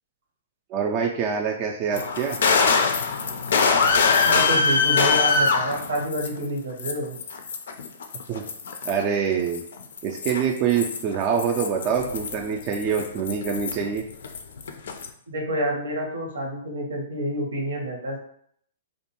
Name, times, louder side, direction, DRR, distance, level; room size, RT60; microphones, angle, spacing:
voice 1, 0.7-2.4 8.3-8.4 8.8-9.6 10.0-14.0, right 7 dB, 35° right, 1 dB, 0.3 m, -25 dB
sound 1, 1.9-6.5 6.8-9.0 9.5-14.0 14.2-15.1, left 4 dB, 70° left, 0.3 m, -23 dB
voice 2, 4.2-7.2 15.3-18.2, equal, 80° right, 0 dB, 0.7 m, -28 dB
2.5 x 2.2 x 2.8 m, 0.67 s
hypercardioid pair, 125°, 0 cm